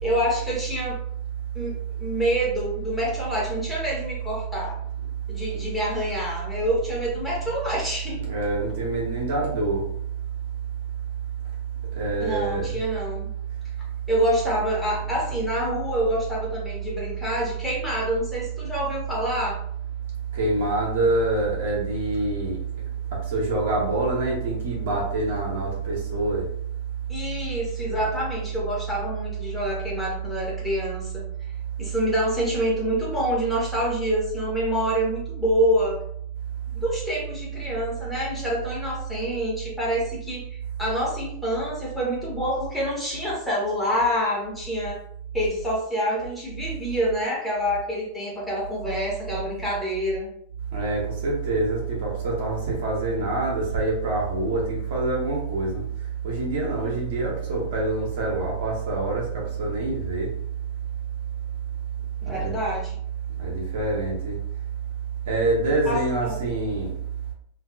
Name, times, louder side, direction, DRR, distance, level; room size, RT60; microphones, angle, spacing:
voice 1, 0.0-1.0 1.5-4.8 5.3-8.2 12.2-13.3 14.1-19.6 27.1-31.2 31.8-36.0 36.7-40.5 40.8-45.0 45.3-50.3 62.2-63.0 65.8-66.4, equal, 5° left, -5 dB, 1.2 m, -27 dB
voice 2, 8.2-9.8 12.0-12.8 20.3-22.6 23.1-26.4 27.8-27.9 50.7-55.8 56.2-60.3 62.2-62.6 63.4-64.4 65.3-66.9, right 3 dB, 55° right, -3 dB, 1.1 m, -25 dB
2.8 x 2.7 x 2.4 m, 0.67 s
figure-of-eight pair, 90°, 0 cm